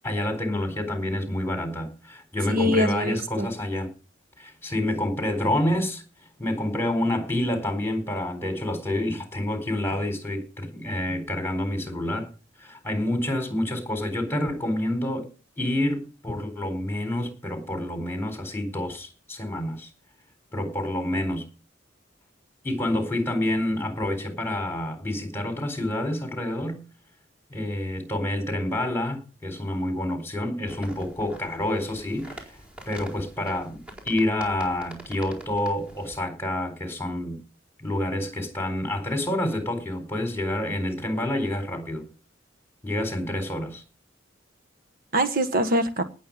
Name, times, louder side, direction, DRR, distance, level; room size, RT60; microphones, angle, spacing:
voice 1, 0.0-3.9 4.4-6.0 6.4-12.3 12.6-15.3 15.6-19.9 20.5-21.4 22.6-26.8 27.5-32.4 32.9-33.8 34.0-37.4 37.8-42.1 42.8-43.8, left 1 dB, 15° left, 4.1 m, -28 dB
voice 2, 2.5-3.5 45.1-46.0, equal, 50° right, 1.4 m, -23 dB
sound 1, 30.7-36.2, right 1 dB, 5° right, 4.4 m, -45 dB
18.5 x 7.5 x 5.4 m
head